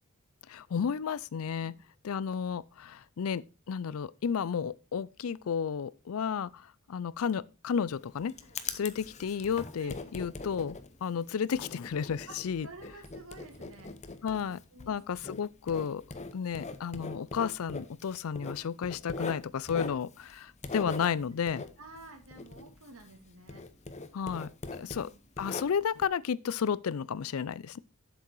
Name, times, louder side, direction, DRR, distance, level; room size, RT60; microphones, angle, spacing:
voice 1, 0.5-1.7 2.0-8.3 8.7-12.7 14.2-14.6 14.9-16.0 16.3-21.6 24.1-25.1 25.4-27.8, left 7 dB, 80° left, 0.4 m, -32 dB
Writing, 7.9-23.2 23.5-26.0, left 3 dB, 35° left, 0.8 m, -42 dB
voice 2, 12.6-13.9 14.2-15.0 21.5-23.6 24.7-25.2, right 2 dB, 75° right, 2.3 m, -51 dB
7.8 x 7.2 x 4.6 m
head